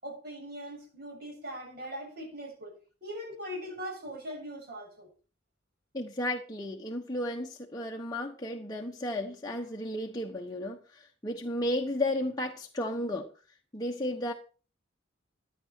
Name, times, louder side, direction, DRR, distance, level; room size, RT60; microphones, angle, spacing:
voice 1, 0.0-2.7 3.0-5.1, equal, 55° right, 7.1 m, -40 dB
voice 2, 5.9-13.3 13.7-14.3, left 1 dB, 20° left, 1.1 m, -33 dB
15.0 x 10.5 x 4.5 m
head